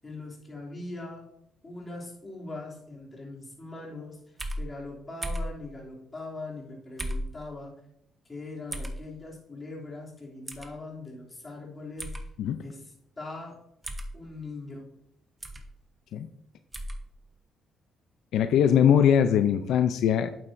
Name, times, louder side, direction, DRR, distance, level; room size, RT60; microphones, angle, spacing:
voice 1, 0.0-1.3 1.6-4.2 4.5-7.7 8.3-12.1 12.6-13.6 14.1-14.9, left 2 dB, 25° left, -3 dB, 2.9 m, -41 dB
sound 1, 4.4-4.6 5.2-5.5 7.0-7.3 8.7-9.0 10.5-10.7 12.0-12.2 13.8-14.1 15.4-15.7 16.7-17.0, equal, 25° right, 1.1 m, -33 dB
voice 2, 18.3-20.3, left 9 dB, 80° left, 9 dB, 0.5 m, -21 dB
8.8 x 7.7 x 2.6 m, 0.80 s
cardioid pair, 90°, 0 cm